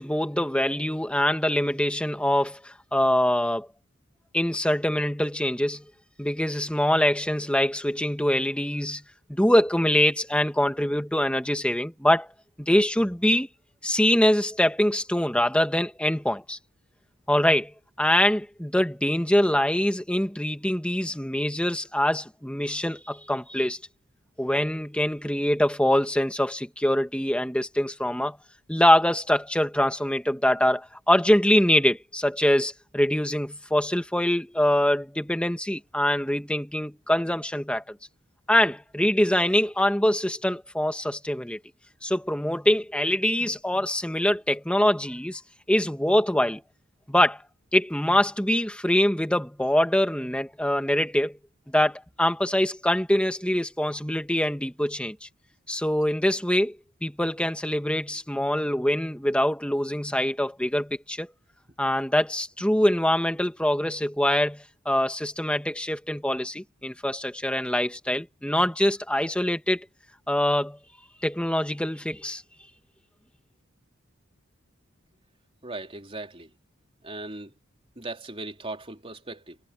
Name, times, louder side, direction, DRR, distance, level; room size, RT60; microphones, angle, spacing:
voice 1, 0.0-3.7 4.3-5.8 6.2-9.0 9.3-12.3 12.6-13.5 13.8-16.6 17.3-17.7 18.0-23.8 24.4-28.4 28.7-38.0 38.5-41.6 42.0-45.4 45.7-46.6 47.1-47.4 47.7-51.4 51.7-55.3 55.7-56.8 57.0-61.3 61.8-69.9 70.3-70.8 71.2-72.4, left 1 dB, 5° left, 1.9 m, -24 dB
voice 2, 75.6-76.5 77.0-77.5 78.0-79.6, right 2 dB, 30° right, 3.5 m, -38 dB
head